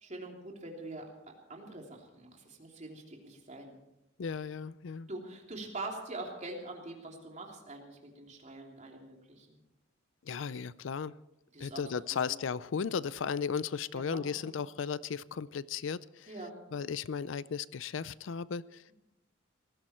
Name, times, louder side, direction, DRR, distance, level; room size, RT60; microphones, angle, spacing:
voice 1, 0.0-1.1 1.5-3.7 5.1-9.6 11.5-11.8 12.1-12.4 13.9-14.5 16.3-16.6, right 2 dB, 35° right, 1 dB, 3.1 m, -44 dB
voice 2, 4.2-5.1 10.3-11.1 11.6-16.3 16.7-18.8, left 6 dB, 70° left, 18 dB, 0.4 m, -35 dB
18.5 x 15.5 x 4.4 m, 0.87 s
head